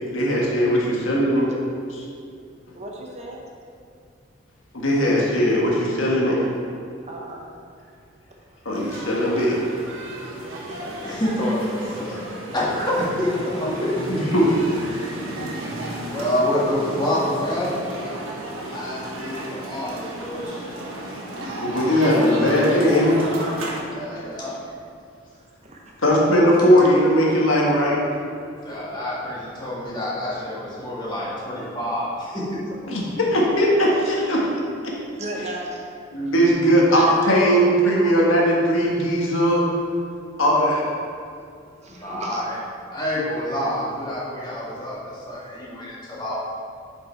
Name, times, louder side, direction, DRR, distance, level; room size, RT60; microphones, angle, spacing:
voice 1, 0.0-1.5 1.9-2.0 4.7-6.5 8.6-9.6 14.1-14.5 21.6-23.1 26.0-28.0 32.9-33.0 33.3-34.4 36.1-39.6 40.4-40.8, equal, 90° left, -4 dB, 1.6 m, -19 dB
voice 2, 2.7-3.4 7.1-7.6 10.3-11.2 25.3-25.9 26.4-26.5 35.1-35.8 36.9-38.0 41.8-42.4, right 1 dB, 35° right, -1 dB, 0.9 m, -35 dB
sound 1, 8.7-23.8, right 1 dB, 90° right, 1.4 m, -33 dB
voice 3, 11.0-14.0 14.5-15.0 16.0-20.8 22.5-22.6 23.9-24.6 28.6-32.6 33.1-33.2 41.9-42.6 42.9-46.3, left 1 dB, 20° left, -7 dB, 1.9 m, -27 dB
7.4 x 5.2 x 4.5 m, 2.3 s
head